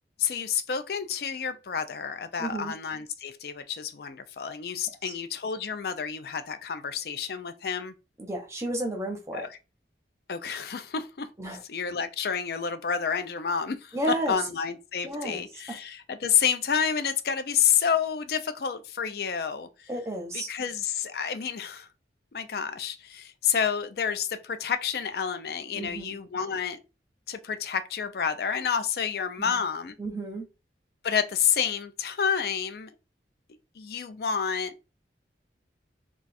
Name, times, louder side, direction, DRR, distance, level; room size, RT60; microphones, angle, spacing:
voice 1, 0.2-7.9 9.3-9.5 10.3-11.3 11.7-14.0 14.3-19.9 20.3-21.9 22.3-26.8 27.3-29.9 31.0-32.9 33.8-34.7, left 7 dB, 55° left, 0.4 m, -29 dB
voice 2, 2.4-2.7 5.0-5.1 8.2-9.5 11.4-11.6 13.9-14.4 15.0-15.4 15.7-15.8 19.9-20.5 25.7-26.1 29.4-29.6 30.0-30.4, right 1 dB, 15° right, 0.7 m, -32 dB
2.4 x 2.3 x 4.0 m
head